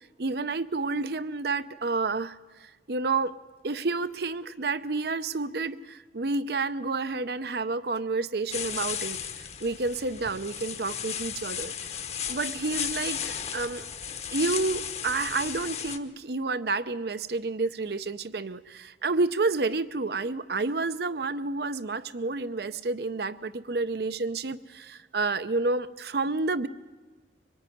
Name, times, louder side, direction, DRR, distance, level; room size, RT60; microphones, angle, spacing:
voice 1, 0.2-2.3 2.6-3.3 3.6-9.2 9.6-11.7 12.3-13.8 14.3-26.7, right 3 dB, 60° right, 14 dB, 0.7 m, -30 dB
sound 1, 8.5-16.0, left 8 dB, 35° left, 1.0 m, -35 dB
24.0 x 19.5 x 10.0 m, 1.3 s
head